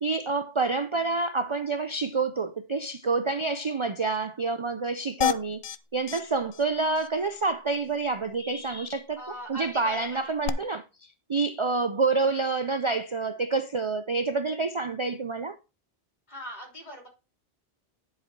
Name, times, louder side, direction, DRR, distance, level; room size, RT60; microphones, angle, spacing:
voice 1, 0.0-5.6 5.9-15.6, right 3 dB, 35° right, 0.5 m, -28 dB
sound 1, 5.2-5.8 6.1-6.2 6.5-6.6 7.0-7.1 10.4-10.5, left 9 dB, 65° left, 0.7 m, -27 dB
voice 2, 9.2-10.2 16.3-17.1, equal, 40° left, 3.5 m, -40 dB
10.5 x 5.0 x 4.6 m
omnidirectional pair, 1.1 m